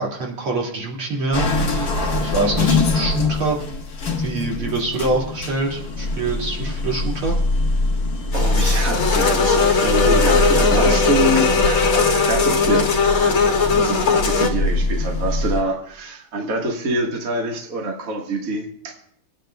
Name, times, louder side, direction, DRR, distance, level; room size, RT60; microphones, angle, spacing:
voice 1, 0.0-3.6 4.2-7.4, right 2 dB, 75° right, -2 dB, 3.2 m, -25 dB
sound 1, 1.3-15.6, left 2 dB, 50° left, 1.8 m, -23 dB
sound 2, 8.3-14.5, left 4 dB, 75° left, 2.3 m, -18 dB
voice 2, 8.3-13.0 13.3-13.4 13.8-19.0, right 1 dB, 40° right, 0 dB, 1.7 m, -25 dB
27.0 x 9.2 x 2.2 m, 0.66 s
omnidirectional pair, 2.4 m